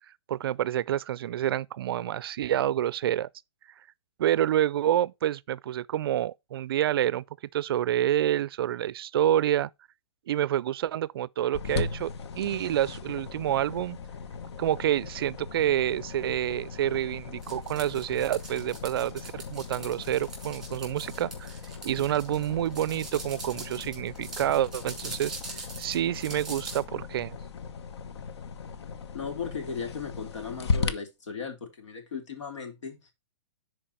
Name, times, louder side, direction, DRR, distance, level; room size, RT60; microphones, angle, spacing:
voice 1, 0.3-3.3 4.2-7.2 7.5-9.7 10.3-12.1 12.4-14.0 14.6-21.5 21.8-25.4 25.8-27.4, right 11 dB, 55° right, 0.4 m, -28 dB
sound 1, 11.5-30.9, left 5 dB, 65° left, 1.0 m, -38 dB
sound 2, 17.4-26.8, right 3 dB, 5° right, 3.6 m, -43 dB
voice 2, 29.1-33.1, left 6 dB, 85° left, 3.4 m, -37 dB
10.5 x 4.7 x 4.3 m
hypercardioid pair, 165°, 15 cm